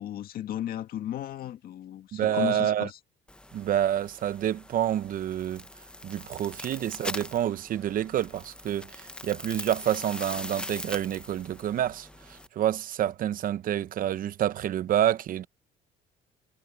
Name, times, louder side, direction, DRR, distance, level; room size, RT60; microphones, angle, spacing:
voice 1, 0.0-3.0, left 11 dB, 65° left, 1.9 m, -34 dB
voice 2, 2.1-2.9 3.5-5.6 6.0-15.5, right 11 dB, 55° right, 0.9 m, -28 dB
sound 1, 3.3-12.5, left 1 dB, 5° left, 0.8 m, -42 dB
cardioid pair, 120°, 17 cm